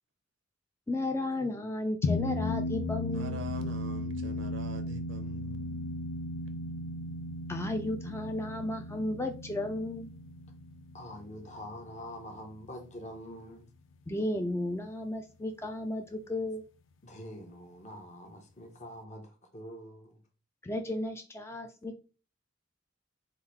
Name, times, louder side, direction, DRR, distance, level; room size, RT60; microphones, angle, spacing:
voice 1, 0.9-3.5 7.5-10.1 14.1-16.6 20.6-22.0, left 1 dB, 15° left, 0.4 m, -34 dB
sound 1, 2.0-12.7, left 2 dB, 80° left, 0.5 m, -36 dB
voice 2, 3.1-5.7, right 3 dB, 70° right, 0.6 m, -44 dB
voice 3, 10.9-13.7 17.0-20.2, equal, 35° left, 1.0 m, -45 dB
3.7 x 2.7 x 4.5 m
head